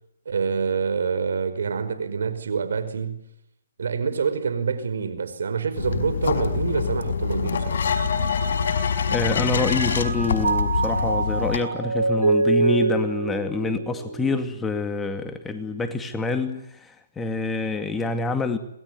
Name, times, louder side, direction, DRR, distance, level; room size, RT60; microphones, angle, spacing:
voice 1, 0.3-3.3 3.8-7.9, right 6 dB, 70° right, 5.2 m, -26 dB
sound 1, 5.8-11.6, left 6 dB, 65° left, 5.2 m, -25 dB
Mallet percussion, 8.3-9.2 9.6-15.0, right 3 dB, 85° right, 6.0 m, -26 dB
voice 2, 9.1-18.6, left 3 dB, 10° left, 2.2 m, -27 dB
27.0 x 20.5 x 9.6 m
hypercardioid pair, 140°, 0 cm